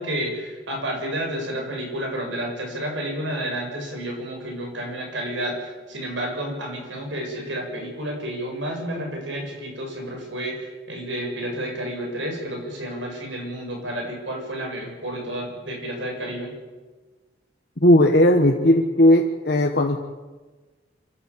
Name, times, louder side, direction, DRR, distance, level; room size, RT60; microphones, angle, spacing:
voice 1, 0.0-16.5, right 1 dB, 90° right, 1 dB, 7.5 m, -30 dB
voice 2, 17.8-20.0, left 1 dB, 55° left, 2 dB, 1.4 m, -16 dB
27.5 x 12.5 x 8.6 m, 1.3 s
head